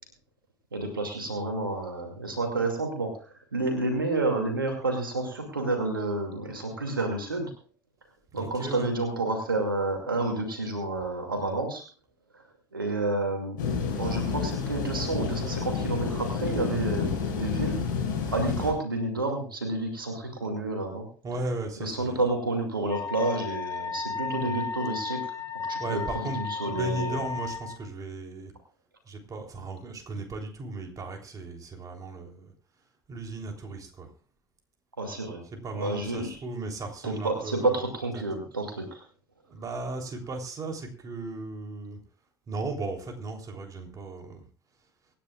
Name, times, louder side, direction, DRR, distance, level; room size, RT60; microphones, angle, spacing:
voice 1, 0.7-7.5 8.3-11.8 12.3-12.4 12.7-13.6 13.9-17.8 18.3-21.1 21.8-25.3 25.7-27.2 35.0-35.4 35.7-36.4 37.0-39.0, right 2 dB, 85° right, 3 dB, 2.5 m, -30 dB
voice 2, 8.3-8.9 21.2-22.2 24.3-24.6 25.8-28.5 29.1-32.5 33.1-34.1 35.5-37.9 38.1-38.2 39.5-42.0 42.5-44.4, right 2 dB, 30° right, 2 dB, 3.5 m, -36 dB
sound 1, 13.6-18.7, left 5 dB, 70° left, 5.6 m, -30 dB
Wind instrument woodwind instrument, 22.9-27.8, left 5 dB, 30° left, 2.3 m, -34 dB
25.0 x 10.0 x 2.4 m, 0.39 s
figure-of-eight pair, 65°, 11 cm